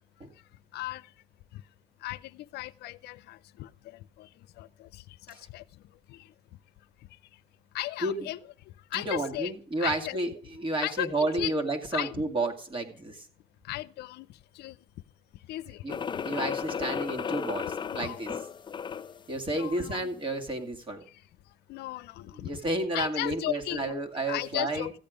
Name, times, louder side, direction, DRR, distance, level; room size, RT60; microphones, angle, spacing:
voice 1, 0.7-1.1 1.5-1.6 2.0-4.3 4.6-5.6 6.1-6.3 7.7-8.5 8.9-9.5 9.8-10.2 10.8-11.5 11.9-12.2 13.6-14.3 14.5-14.8 15.5-15.8 17.9-18.2 19.5-20.1 21.7-22.5 22.9-23.9 24.3-24.9, left 16 dB, 75° left, 0.6 m, -36 dB
voice 2, 8.9-10.3 10.6-13.3 15.8-15.9 16.2-18.3 19.3-21.0 22.4-24.9, right 2 dB, 30° right, 2.4 m, -31 dB
sound 1, 15.9-19.2, left 7 dB, 30° left, 0.5 m, -34 dB
14.5 x 8.9 x 5.1 m
cardioid pair, 110°, 17 cm